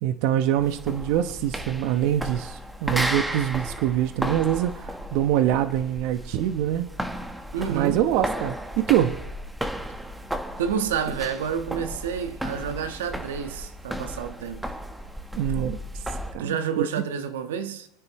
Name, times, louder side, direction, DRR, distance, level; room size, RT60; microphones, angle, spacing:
voice 1, 0.0-6.9 7.7-9.2 15.4-16.0 16.3-16.9, right 11 dB, 55° right, 1.0 m, -24 dB
sound 1, 0.6-16.4, equal, 5° right, 1.3 m, -34 dB
voice 2, 7.5-8.1 10.6-14.6 16.4-17.9, right 7 dB, 80° right, 1.3 m, -29 dB
29.0 x 9.7 x 3.1 m
supercardioid pair, 120°, 0 cm